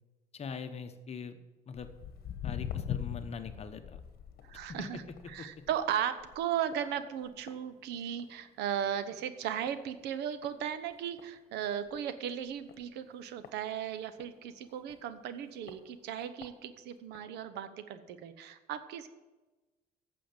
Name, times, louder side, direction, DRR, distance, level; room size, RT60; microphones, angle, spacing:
voice 1, 0.3-1.4 1.7-1.9 2.4-4.0 4.7-5.0 5.4-5.5, left 6 dB, 40° left, 9 dB, 1.0 m, -42 dB
Walk footsteps, 1.8-8.4 8.7-9.1 9.7-9.8 10.4-10.5 10.9-11.0 11.2-11.3 11.9-12.0 12.7-14.3 14.9-15.0 15.7-15.8 16.2-16.5 17.1-17.2, left 9 dB, 65° left, 1.1 m, -42 dB
voice 2, 4.5-5.0 5.3-19.1, right 9 dB, 80° right, 12 dB, 0.9 m, -36 dB
8.8 x 7.1 x 7.4 m, 1.2 s
cardioid pair, 110°, 17 cm